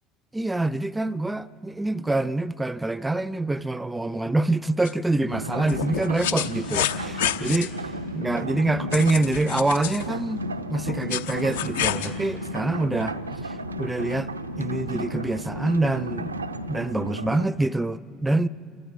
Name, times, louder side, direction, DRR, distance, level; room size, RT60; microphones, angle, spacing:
voice 1, 0.3-7.7 8.1-13.2 13.4-14.3 14.6-16.3 16.7-18.5, right 2 dB, 10° right, 0.5 m, -25 dB
sound 1, 4.8-4.9 5.7-7.7 8.9-10.1 10.9-12.1, left 9 dB, 75° left, 0.9 m, -29 dB
sound 2, 5.3-17.5, right 1 dB, 90° right, 0.6 m, -33 dB
28.5 x 14.0 x 8.6 m
figure-of-eight pair, 65°, 0 cm